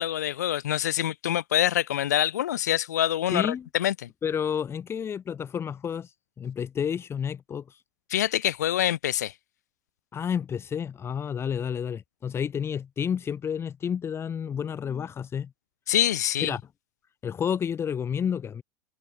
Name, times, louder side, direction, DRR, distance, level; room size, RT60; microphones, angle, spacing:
voice 1, 0.0-3.5 3.7-4.1 8.1-9.3 15.9-16.5, left 12 dB, 65° left, 1.2 m, -25 dB
voice 2, 3.3-3.7 4.2-7.8 10.1-15.5 16.4-16.6 17.2-18.6, left 8 dB, 25° left, 2.9 m, -30 dB
figure-of-eight pair, 80°, 10 cm